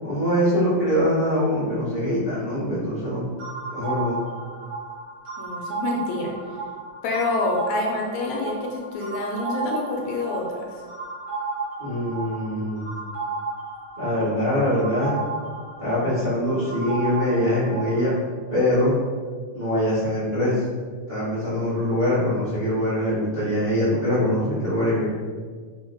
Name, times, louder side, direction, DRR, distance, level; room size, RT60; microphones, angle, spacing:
voice 1, 0.0-3.2 3.7-4.2 11.8-12.9 14.0-15.2 15.8-18.1 18.5-19.0 19.5-20.6 21.1-25.1, equal, 85° right, -11 dB, 0.5 m, -23 dB
sound 1, 3.4-18.2, right 3 dB, 70° right, 1.3 m, -33 dB
voice 2, 5.4-6.3 7.0-10.8, left 2 dB, 80° left, 0 dB, 1.7 m, -27 dB
5.1 x 2.1 x 3.8 m, 1.5 s
omnidirectional pair, 3.4 m